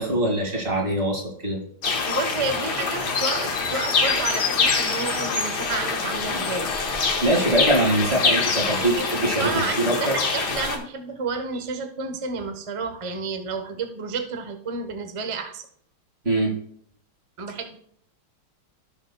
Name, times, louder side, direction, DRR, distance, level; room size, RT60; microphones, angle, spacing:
voice 1, 0.0-1.6 7.2-10.2 16.2-16.5, right 1 dB, 30° right, 0 dB, 2.1 m, -23 dB
sound 1, 1.8-10.8, left 4 dB, 55° left, 1.7 m, -25 dB
voice 2, 2.1-6.7 8.7-15.6 17.4-17.8, right 4 dB, 50° right, 6 dB, 0.4 m, -31 dB
16.0 x 6.3 x 2.2 m, 0.66 s
omnidirectional pair, 2.3 m